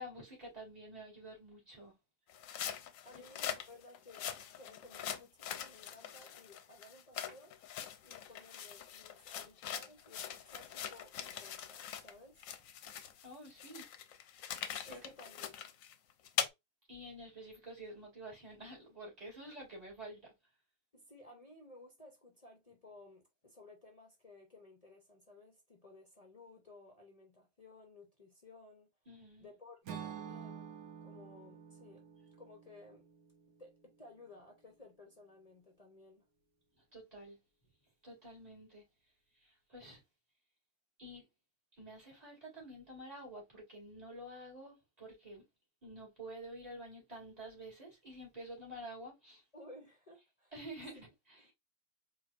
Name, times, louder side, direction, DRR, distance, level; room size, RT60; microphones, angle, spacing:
voice 1, 0.0-1.9 13.2-13.9 14.9-15.1 16.9-20.3 29.1-29.5 36.9-37.4 38.0-38.8 39.4-40.0 41.0-41.3 41.8-45.4 45.8-49.4 50.5-51.4, right 1 dB, 25° right, 2.7 m, -49 dB
sound 1, 2.3-12.1 12.4-16.5, left 9 dB, 75° left, 0.9 m, -42 dB
voice 2, 3.0-7.5 8.0-12.5 14.8-15.7 20.9-28.9 29.4-30.6 31.0-32.1 32.4-33.1 33.6-36.3 49.5-50.5 51.4-51.5, left 2 dB, 35° left, 0.6 m, -57 dB
Acoustic guitar / Strum, 29.8-34.0, right 8 dB, 85° right, 1.2 m, -49 dB
4.5 x 2.9 x 2.5 m
omnidirectional pair, 1.5 m